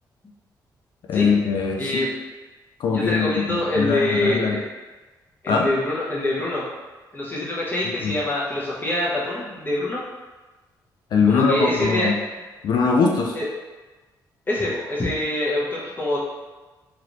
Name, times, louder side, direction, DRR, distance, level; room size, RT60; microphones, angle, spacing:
voice 1, 1.1-1.8 2.8-4.6 5.5-5.7 8.0-8.1 11.1-12.1 12.6-13.4, left 5 dB, 70° left, 1 dB, 0.5 m, -21 dB
voice 2, 1.8-2.1 2.9-4.6 5.4-6.7 7.1-10.0 11.2-12.1 13.3-13.5 14.5-16.2, left 1 dB, 25° left, -6 dB, 1.0 m, -25 dB
3.1 x 3.1 x 2.6 m, 1.2 s
cardioid pair, 90°, 8 cm